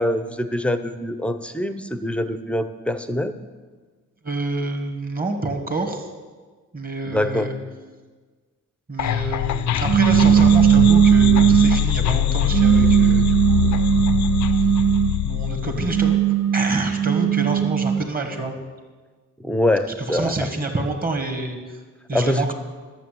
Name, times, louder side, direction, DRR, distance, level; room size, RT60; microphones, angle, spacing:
voice 1, 0.0-3.3 7.0-7.5 19.4-20.5 22.1-22.5, left 1 dB, 5° left, 10 dB, 0.6 m, -24 dB
voice 2, 4.2-6.1 6.7-7.6 8.9-14.0 15.2-18.6 20.1-21.8 22.1-22.5, right 2 dB, 30° right, 4 dB, 1.7 m, -27 dB
sound 1, 9.0-16.2, left 11 dB, 70° left, 0.5 m, -23 dB
sound 2, 9.8-11.9 12.5-15.2 15.8-18.1, right 10 dB, 85° right, 0.5 m, -17 dB
11.0 x 7.4 x 7.6 m, 1.4 s
cardioid pair, 110°, 30 cm